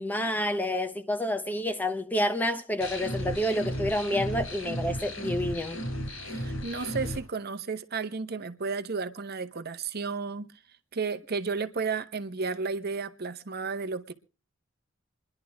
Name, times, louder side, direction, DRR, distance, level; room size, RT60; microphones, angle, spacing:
voice 1, 0.0-5.8, left 1 dB, 10° left, 0.8 m, -29 dB
sound 1, 2.8-7.2, equal, 75° left, 4.7 m, -34 dB
voice 2, 6.2-10.5 10.9-14.1, right 4 dB, 50° right, 0.9 m, -33 dB
27.0 x 11.0 x 3.5 m
head